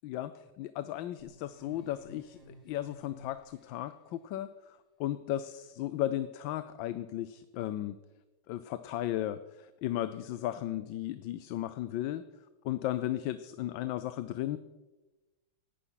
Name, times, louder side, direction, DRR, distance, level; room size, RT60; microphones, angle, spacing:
voice 1, 0.0-8.0 8.5-12.2 12.6-14.6, left 13 dB, 90° left, 13 dB, 1.4 m, -35 dB
sound 1, 1.2-3.9, equal, 35° left, 5.4 m, -55 dB
17.0 x 12.0 x 5.7 m, 1.1 s
omnidirectional pair, 2.0 m